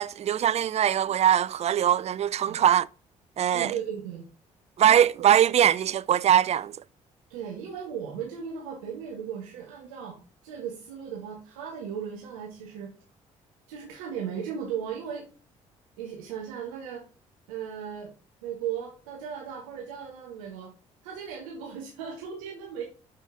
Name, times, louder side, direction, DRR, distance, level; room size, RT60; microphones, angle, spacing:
voice 1, 0.0-2.9 3.4-3.7 4.8-6.7, right 10 dB, 40° right, 0.5 m, -22 dB
voice 2, 3.5-4.2 5.2-5.3 7.3-10.2 10.4-12.9 13.7-15.3 16.0-17.0 17.5-18.1 18.4-20.7 21.0-22.8, right 8 dB, 75° right, 1.6 m, -36 dB
12.0 x 5.4 x 3.8 m
figure-of-eight pair, 45°, 17 cm